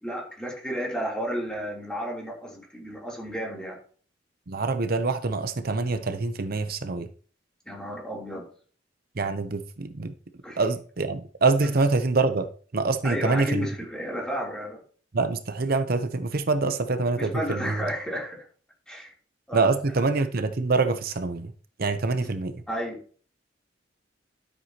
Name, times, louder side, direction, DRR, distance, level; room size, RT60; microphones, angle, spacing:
voice 1, 0.0-3.8 7.6-8.5 10.4-10.6 13.0-14.8 17.2-18.4 18.9-19.1 19.5-19.7 22.2-22.3 22.7-23.0, equal, 5° left, 3.3 m, -32 dB
voice 2, 4.5-7.1 9.2-10.1 10.6-12.5 12.7-13.7 15.1-17.8 19.5-21.5 21.8-22.6, right 3 dB, 50° right, 0.7 m, -25 dB
12.5 x 8.1 x 2.9 m
head